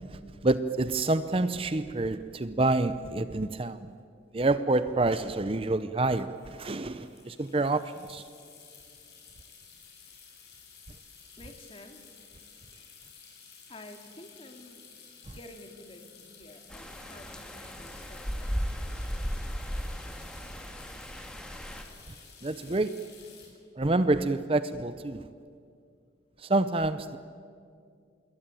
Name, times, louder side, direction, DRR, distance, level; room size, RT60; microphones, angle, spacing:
voice 1, 0.0-3.9 4.3-8.2 15.3-15.4 22.4-23.0 23.8-25.3 26.4-27.2, right 2 dB, 30° right, 12 dB, 0.6 m, -28 dB
sound 1, 4.7-4.9 6.3-23.5, left 6 dB, 60° left, 7.4 m, -53 dB
voice 2, 11.4-12.2 13.7-14.9 15.2-18.8, left 1 dB, 30° left, 5 dB, 2.4 m, -50 dB
sound 2, 16.7-21.8, equal, 5° left, 2.2 m, -36 dB
27.0 x 21.5 x 9.1 m, 2.4 s
head